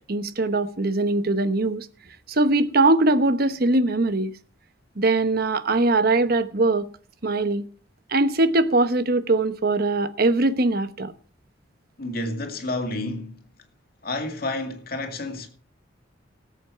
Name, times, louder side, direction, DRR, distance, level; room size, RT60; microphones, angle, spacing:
voice 1, 0.1-1.9 2.3-4.3 5.0-6.9 7.2-7.6 8.1-11.1, right 2 dB, 55° right, 1.0 m, -21 dB
voice 2, 12.0-13.4 14.0-15.5, left 2 dB, 55° left, 2.3 m, -30 dB
19.0 x 8.2 x 4.6 m
head